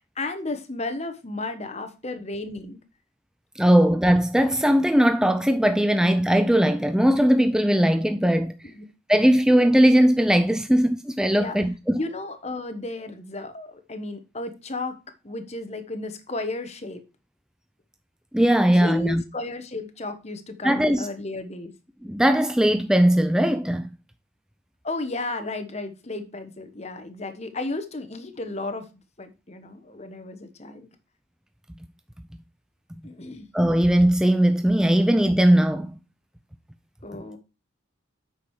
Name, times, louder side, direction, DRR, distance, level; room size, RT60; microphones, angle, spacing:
voice 1, 0.2-2.8 8.6-8.8 11.4-11.6 11.9-15.0 15.2-17.0 18.7-21.7 24.8-28.9 29.2-30.9 33.0-33.5 37.0-37.4, left 2 dB, 30° left, 1.2 m, -33 dB
voice 2, 3.6-8.5 9.1-12.0 18.3-19.2 20.6-21.1 22.0-23.9 33.5-35.9, equal, 5° right, 0.4 m, -19 dB
8.7 x 6.2 x 4.8 m
head